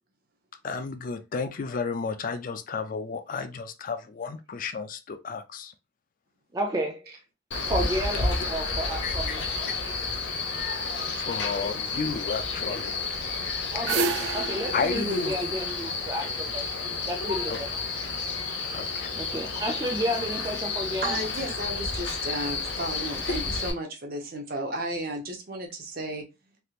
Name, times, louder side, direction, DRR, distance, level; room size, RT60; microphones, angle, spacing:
voice 1, 0.6-5.7 9.0-9.4 9.7-9.8 11.2-13.1 14.7-15.4 17.5-17.6 18.7-19.2, left 5 dB, 45° left, 0.4 m, -32 dB
voice 2, 6.5-7.0 7.7-9.4 13.7-16.7 17.1-17.7 19.1-21.2, equal, 20° right, 0.4 m, -31 dB
Male speech man speaking, 7.5-23.7, left 4 dB, 65° left, 0.8 m, -31 dB
sound 1, 13.4-16.5, right 4 dB, 90° right, 0.3 m, -31 dB
voice 3, 21.0-26.3, right 1 dB, 50° right, 0.8 m, -33 dB
3.3 x 2.8 x 2.4 m
head